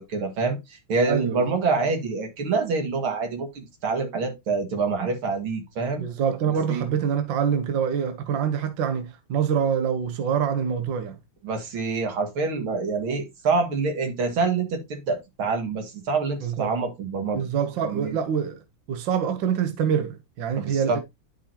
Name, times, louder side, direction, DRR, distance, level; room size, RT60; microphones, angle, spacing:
voice 1, 0.0-6.0 6.7-6.9 11.4-17.4 17.8-18.2 20.6-21.0, right 4 dB, 90° right, 2.6 m, -26 dB
voice 2, 1.1-1.4 6.0-11.2 16.4-16.7 17.3-18.6 18.9-21.0, right 7 dB, 65° right, 1.7 m, -25 dB
11.0 x 5.0 x 2.8 m
omnidirectional pair, 2.2 m